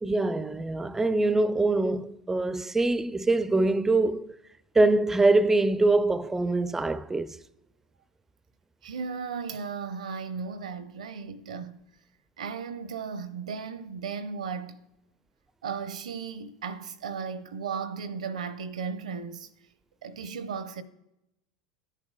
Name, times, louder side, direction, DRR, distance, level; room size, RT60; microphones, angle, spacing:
voice 1, 0.0-4.4 4.7-7.4, right 2 dB, 10° right, 0.4 m, -24 dB
voice 2, 8.8-11.8 12.4-14.8 15.6-19.5 20.0-20.8, right 6 dB, 80° right, 0.6 m, -35 dB
15.5 x 8.2 x 2.3 m
hypercardioid pair, 90°, 4 cm